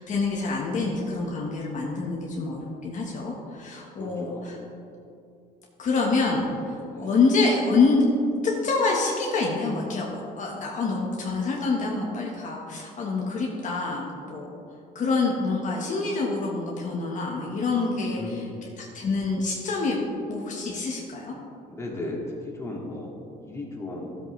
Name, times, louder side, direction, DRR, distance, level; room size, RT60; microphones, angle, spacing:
voice 1, 0.0-4.6 5.8-8.0 8.6-14.5 14.9-18.5 18.8-20.0 20.3-21.3, left 3 dB, 50° left, -2 dB, 1.4 m, -26 dB
voice 2, 4.0-4.6 6.9-7.1 18.1-18.6 21.7-24.2, left 2 dB, 15° left, -3 dB, 2.1 m, -36 dB
13.5 x 7.9 x 3.3 m, 2.6 s
cardioid pair, 110°, 17 cm